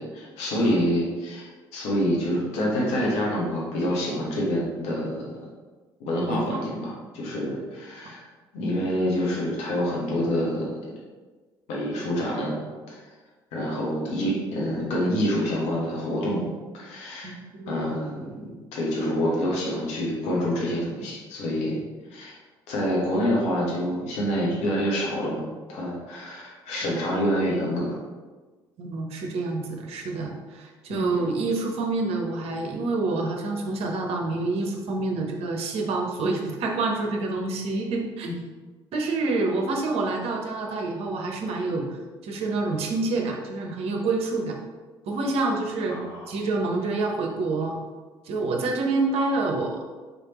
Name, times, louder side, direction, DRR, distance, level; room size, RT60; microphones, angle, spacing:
voice 1, 0.0-5.3 6.0-8.2 8.5-10.7 11.7-12.6 12.9-13.0 13.5-16.5 16.7-17.3 17.7-21.8 22.1-22.3 22.7-25.4 25.7-28.0 30.9-31.2 38.2-38.3 45.9-46.2, equal, 65° left, -4 dB, 1.4 m, -27 dB
voice 2, 6.3-6.6 17.2-18.0 26.8-27.0 28.8-38.3 38.9-44.5 45.1-46.0 46.3-47.8 48.2-49.8, right 3 dB, 60° right, 1 dB, 0.8 m, -27 dB
4.9 x 3.3 x 3.0 m, 1.3 s
hypercardioid pair, 50°, 12 cm